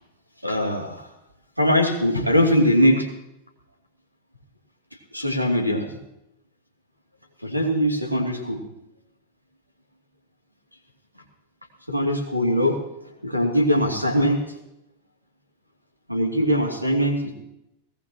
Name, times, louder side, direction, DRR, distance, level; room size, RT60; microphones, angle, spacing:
voice 1, 0.4-1.1 1.6-3.1 5.1-6.0 7.4-8.6 11.9-12.8 13.2-14.6 16.1-17.3, equal, 90° right, 3 dB, 2.7 m, -21 dB
22.5 x 18.5 x 3.0 m, 0.85 s
figure-of-eight pair, 90°, 0 cm